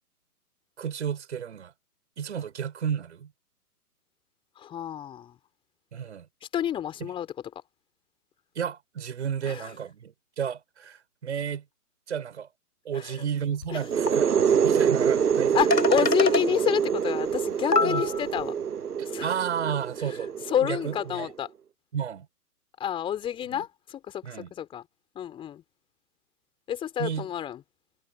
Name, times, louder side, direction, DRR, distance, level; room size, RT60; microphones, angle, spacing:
voice 1, 0.8-1.7 2.2-3.3 5.9-6.3 8.6-11.6 12.1-12.5 12.9-15.6 16.0-16.1 17.8-18.0 19.0-20.3 20.6-21.3 21.9-22.3 23.5-23.6 24.2-24.5 27.0-27.3, right 8 dB, 45° right, 6.8 m, -32 dB
voice 2, 4.6-5.4 6.5-7.3 9.4-9.7 12.9-13.3 13.7-13.8 15.5-18.5 19.0-19.3 20.5-21.5 22.8-24.8 25.1-25.6 26.7-27.6, left 10 dB, 10° left, 4.2 m, -29 dB
sound 1, 13.6-13.7 14.1-14.2 15.3-15.4 15.7-16.4 17.3-17.4 17.7-18.4, left 3 dB, 90° left, 1.4 m, -25 dB
sound 2, 13.8-21.3, right 7 dB, 70° right, 0.9 m, -26 dB
figure-of-eight pair, 135°, 47 cm